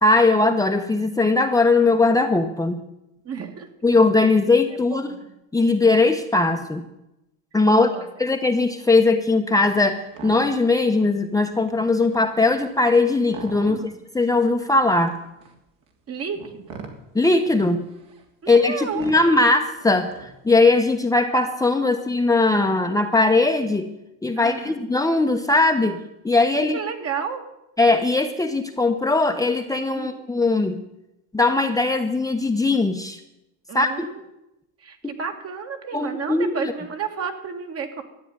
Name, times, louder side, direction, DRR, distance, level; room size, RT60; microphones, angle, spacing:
voice 1, 0.0-2.8 3.8-5.1 5.5-6.9 7.5-7.9 8.2-15.2 17.1-17.8 18.5-23.9 24.2-26.8 27.8-30.8 31.3-33.2 33.7-34.1 35.9-36.7, left 3 dB, 10° left, 4 dB, 1.0 m, -20 dB
voice 2, 3.2-3.7 4.9-5.3 7.7-8.1 13.6-14.0 16.1-16.9 18.4-19.1 21.8-22.0 24.4-24.9 26.7-27.4 29.9-30.4 33.7-34.2 34.8-38.0, right 6 dB, 40° right, 5 dB, 2.4 m, -32 dB
sound 1, 9.6-9.8 10.1-10.8 11.2-11.3 11.6-14.0 14.7-20.5, right 4 dB, 60° right, 3.1 m, -43 dB
13.0 x 8.8 x 9.5 m, 0.89 s
supercardioid pair, 105°, 36 cm